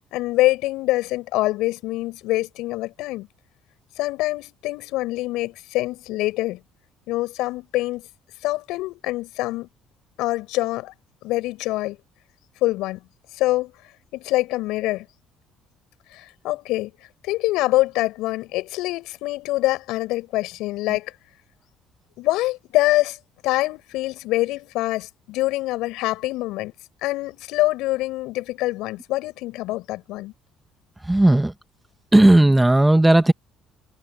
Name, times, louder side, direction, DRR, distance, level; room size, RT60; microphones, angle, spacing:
voice 1, 0.1-3.3 4.0-6.6 7.1-8.0 8.4-9.7 10.2-10.9 11.2-12.0 12.6-13.0 13.4-13.7 14.1-15.1 16.1-16.9 17.2-21.1 22.2-23.2 23.4-26.7 27.0-30.3, left 18 dB, 70° left, 7.7 m, -25 dB
voice 2, 31.1-31.5 32.1-33.3, right 1 dB, 10° right, 2.1 m, -14 dB
hypercardioid pair, 55°, 0 cm